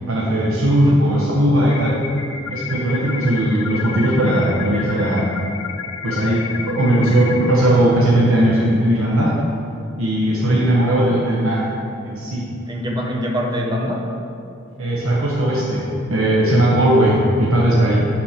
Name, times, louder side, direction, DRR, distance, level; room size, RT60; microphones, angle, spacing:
voice 1, 0.1-2.0 2.5-5.3 6.0-9.3 10.0-11.7 12.0-12.5 14.8-18.1, right 1 dB, 75° right, -5 dB, 1.1 m, -18 dB
voice 2, 0.7-1.0 10.4-10.6 12.7-14.0 15.5-15.6, equal, 20° right, -1 dB, 1.0 m, -24 dB
sound 1, 1.7-7.5, left 6 dB, 85° left, 0.8 m, -31 dB
7.0 x 6.3 x 5.8 m, 2.6 s
head